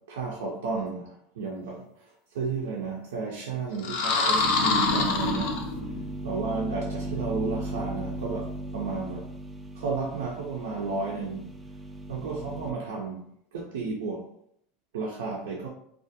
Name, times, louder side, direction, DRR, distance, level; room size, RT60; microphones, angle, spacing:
voice 1, 0.1-1.8 2.3-5.6 6.2-9.3 9.8-11.5 12.1-13.2 13.5-14.3 14.9-15.7, right 4 dB, 90° right, 0.4 m, -32 dB
sound 1, 3.8-6.1, left 3 dB, 70° left, 0.5 m, -25 dB
sound 2, 4.8-12.7, right 2 dB, 10° right, 0.3 m, -37 dB
2.3 x 2.1 x 2.6 m
supercardioid pair, 105°, 0 cm